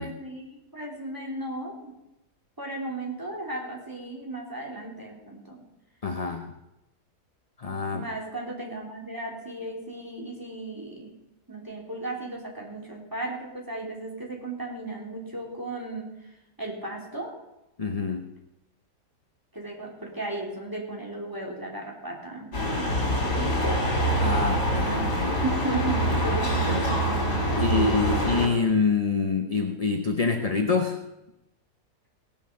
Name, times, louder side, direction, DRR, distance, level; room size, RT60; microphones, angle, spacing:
voice 1, 0.0-1.9 2.6-5.6 7.7-11.1 11.5-16.2 16.6-17.3 19.5-23.5 24.8-25.1 25.4-28.0, right 2 dB, 10° right, -2 dB, 3.0 m, -35 dB
voice 2, 6.0-6.5 7.6-8.1 17.8-18.3 24.2-24.9 25.2-25.4 26.7-27.0 27.5-31.0, left 4 dB, 35° left, 5 dB, 0.6 m, -26 dB
sound 1, 22.5-28.5, equal, 75° left, 4.2 m, -25 dB
18.0 x 7.0 x 6.5 m, 0.92 s
omnidirectional pair, 1.7 m